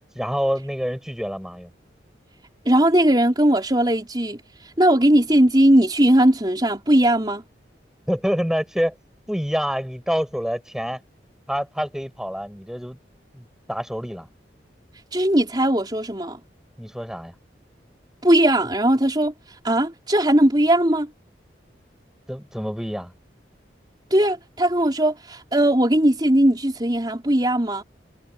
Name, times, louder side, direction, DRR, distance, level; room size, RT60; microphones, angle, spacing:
voice 1, 0.2-1.7 8.1-9.0 9.3-11.0 11.5-13.0 13.3-14.3 16.8-17.3 22.3-23.1, equal, 5° right, 7.0 m, -27 dB
voice 2, 2.7-7.4 15.1-16.4 18.2-21.1 24.1-27.8, right 1 dB, 25° right, 4.0 m, -19 dB
head